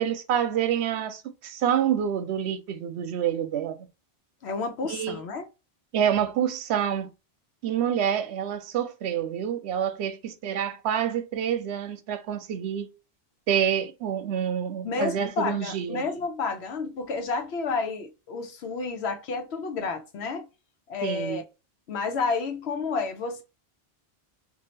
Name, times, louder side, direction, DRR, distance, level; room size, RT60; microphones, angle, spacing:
voice 1, 0.0-3.9 4.8-5.2 5.9-7.1 7.6-12.9 13.5-16.0 21.0-21.4, right 9 dB, 85° right, 0.8 m, -27 dB
voice 2, 4.4-5.4 14.8-20.5 20.9-21.4 21.9-23.4, left 4 dB, 85° left, 1.0 m, -30 dB
2.7 x 2.4 x 3.0 m
omnidirectional pair, 1.1 m